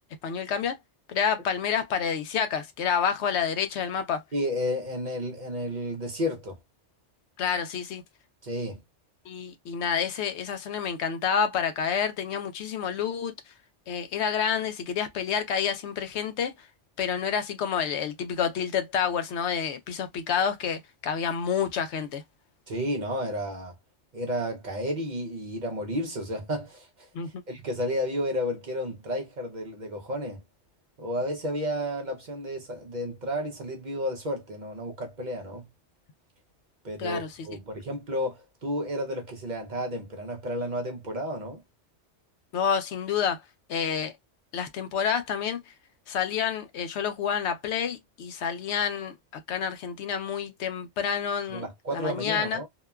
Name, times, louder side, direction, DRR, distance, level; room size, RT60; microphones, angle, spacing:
voice 1, 0.2-0.8 1.1-4.2 7.4-8.0 9.3-13.3 13.9-16.7 17.0-22.2 27.1-27.4 37.0-37.3 42.5-43.4 43.7-44.1 44.5-45.6 46.1-49.1 49.5-51.7 51.9-52.6, left 7 dB, 75° left, 0.9 m, -28 dB
voice 2, 4.3-6.6 8.4-8.8 22.7-23.8 24.1-30.4 31.0-35.7 36.8-41.6 51.5-52.7, equal, 50° right, 0.7 m, -32 dB
2.9 x 2.1 x 2.2 m
omnidirectional pair, 1.2 m